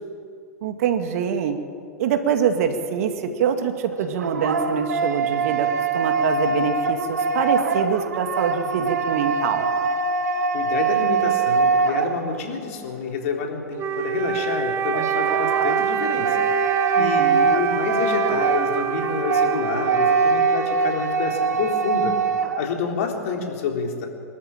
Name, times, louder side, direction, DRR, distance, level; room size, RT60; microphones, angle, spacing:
voice 1, 0.6-1.6 2.0-5.7 5.9-9.7 17.0-17.6, right 7 dB, 60° right, 6 dB, 2.2 m, -24 dB
sound 1, 3.9-12.6 14.9-22.7, right 4 dB, 80° right, 1.2 m, -23 dB
voice 2, 10.5-16.4 17.0-22.2 22.6-24.1, left 5 dB, 60° left, 2 dB, 3.9 m, -28 dB
Wind instrument woodwind instrument, 13.8-21.3, right 8 dB, 30° right, 1.4 m, -26 dB
25.0 x 13.5 x 9.0 m, 2.2 s
hypercardioid pair, 95°, 9 cm